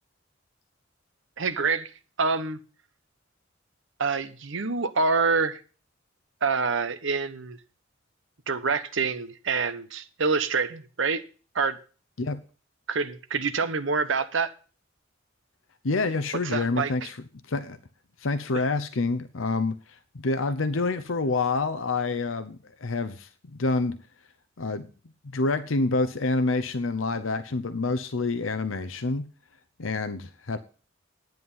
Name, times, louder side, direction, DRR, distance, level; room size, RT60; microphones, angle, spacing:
voice 1, 1.4-1.9 2.2-2.6 4.0-5.6 6.4-7.6 8.5-11.2 11.5-11.8 12.9-14.5 16.5-17.1, right 4 dB, 70° right, 1.0 m, -26 dB
voice 2, 15.8-17.8 18.2-24.0 24.6-24.9 25.3-29.3 29.8-30.6, left 3 dB, 75° left, 0.8 m, -27 dB
10.5 x 9.4 x 5.5 m
head